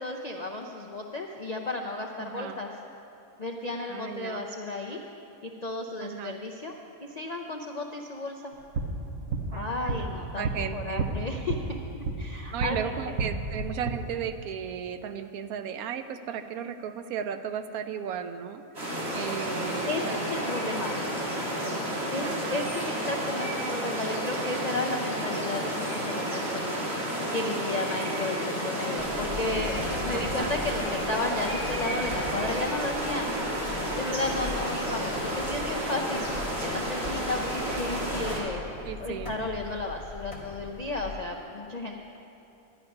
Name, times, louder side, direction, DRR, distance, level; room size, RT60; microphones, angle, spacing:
voice 1, 0.0-2.7 3.4-5.0 5.4-6.7 7.0-8.5 9.5-13.2 19.9-21.0 22.1-26.9 27.3-33.3 34.0-38.6 39.0-42.0, left 2 dB, 60° left, 1 dB, 0.4 m, -33 dB
voice 2, 2.2-2.6 3.9-4.5 6.0-6.4 9.5-10.1 10.4-11.1 12.5-18.6 19.1-20.2 22.2-22.7 30.1-30.5 38.8-39.3, right 8 dB, 85° right, 9 dB, 1.1 m, -35 dB
sound 1, 8.5-12.8 13.1-13.9, right 3 dB, 65° right, 1.3 m, -32 dB
sound 2, 18.8-38.4, right 1 dB, 45° right, 2.3 m, -31 dB
sound 3, 29.0-41.2, left 2 dB, 25° left, 1.3 m, -41 dB
10.5 x 10.5 x 5.3 m, 2.8 s
omnidirectional pair, 1.5 m